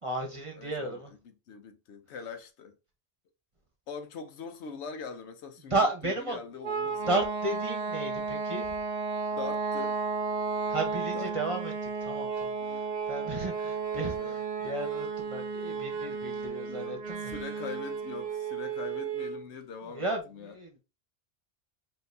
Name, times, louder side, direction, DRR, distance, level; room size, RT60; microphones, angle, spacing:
voice 1, 0.0-1.1 5.7-6.4 7.1-8.7 10.7-17.3 19.9-20.8, right 2 dB, 30° right, 1.0 m, -33 dB
voice 2, 0.5-2.8 3.9-7.2 9.3-10.0 11.1-11.6 12.6-12.8 13.9-14.4 16.7-20.6, left 5 dB, 75° left, 0.9 m, -43 dB
sound 1, 6.6-19.4, right 5 dB, 45° right, 0.8 m, -33 dB
5.4 x 2.7 x 2.7 m
omnidirectional pair, 1.2 m